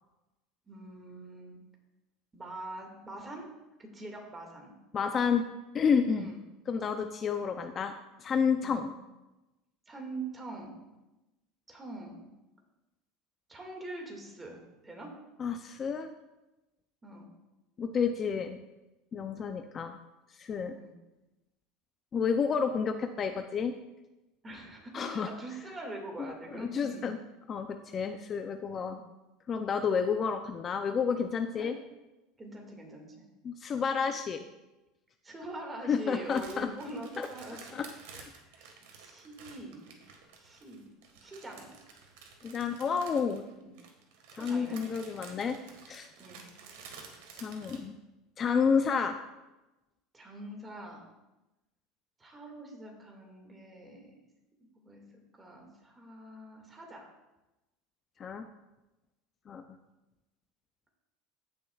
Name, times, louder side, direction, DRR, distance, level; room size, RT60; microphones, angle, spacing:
voice 1, 0.7-1.6 2.3-3.5 3.8-4.7 6.1-6.4 8.6-8.8 9.9-10.7 11.7-12.2 13.5-15.1 17.0-17.3 20.7-20.9 24.4-27.1 28.9-29.0 31.5-31.7 32.4-33.2 35.2-39.9 40.4-40.9 41.2-41.7 43.5-43.7 44.4-44.8 46.2-46.4 50.1-51.1 52.2-54.1 54.8-55.0 55.3-57.1, right 2 dB, 15° right, 1 dB, 2.0 m, -44 dB
voice 2, 4.9-5.4 5.7-6.3 6.7-7.9 8.2-8.9 15.4-16.1 17.8-18.6 19.1-20.0 20.4-20.8 22.1-23.7 24.9-25.3 26.5-27.2 27.5-29.0 29.5-31.7 33.4-34.4 35.9-36.7 37.2-37.3 37.7-38.3 42.4-43.4 44.3-45.6 45.9-46.1 47.3-47.9 48.4-49.2 58.2-58.5 59.5-59.6, left 6 dB, 30° left, 7 dB, 0.5 m, -30 dB
sound 1, 36.2-47.8, right 5 dB, 85° right, 1.6 m, -52 dB
15.5 x 6.5 x 2.4 m, 1.0 s
supercardioid pair, 135°, 0 cm